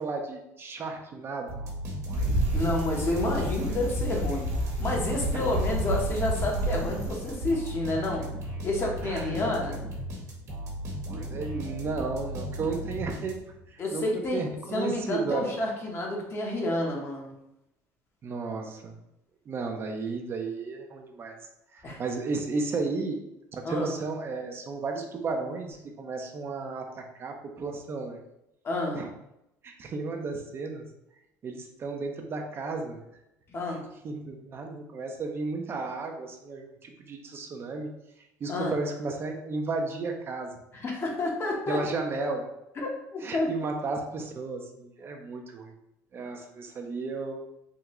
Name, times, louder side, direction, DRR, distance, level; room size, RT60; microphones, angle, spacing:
voice 1, 0.0-1.6 9.0-9.3 11.1-13.4 13.7-15.5 18.2-18.9 19.5-21.4 21.7-23.2 23.5-28.2 28.9-29.1 29.6-30.9 31.4-33.0 34.0-37.9 38.4-40.5 41.7-42.5 43.2-45.7 46.1-47.4, right 3 dB, 35° right, 3 dB, 0.5 m, -33 dB
sound 1, 1.5-13.7, right 1 dB, 55° right, 1.1 m, -36 dB
Bicycle, 2.1-7.5, right 1 dB, 85° right, 1.0 m, -30 dB
voice 2, 2.5-4.5 4.8-8.2 8.6-9.8 13.8-14.4 14.7-17.3 21.8-22.0 23.6-23.9 28.6-29.0 33.5-33.8 38.5-38.7 40.7-41.8 42.8-43.7, left 2 dB, 40° left, 0 dB, 0.9 m, -29 dB
3.6 x 2.2 x 2.9 m, 0.83 s
supercardioid pair, 100°, 7 cm